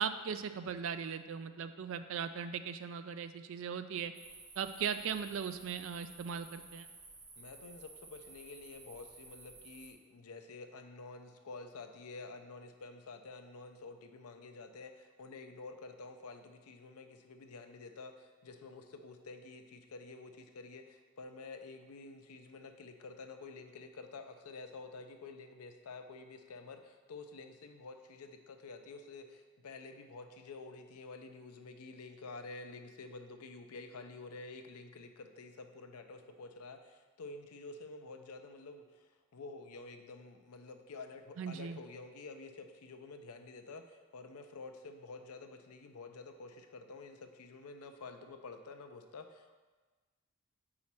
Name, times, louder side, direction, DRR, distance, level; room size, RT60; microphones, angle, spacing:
voice 1, 0.0-4.1 4.6-6.9 41.4-41.8, right 7 dB, 60° right, 10 dB, 0.3 m, -38 dB
sound 1, 4.1-9.9, right 3 dB, 75° right, 1.8 m, -54 dB
voice 2, 7.4-49.6, left 3 dB, 80° left, 7 dB, 0.5 m, -49 dB
4.8 x 4.2 x 5.8 m, 1.3 s
head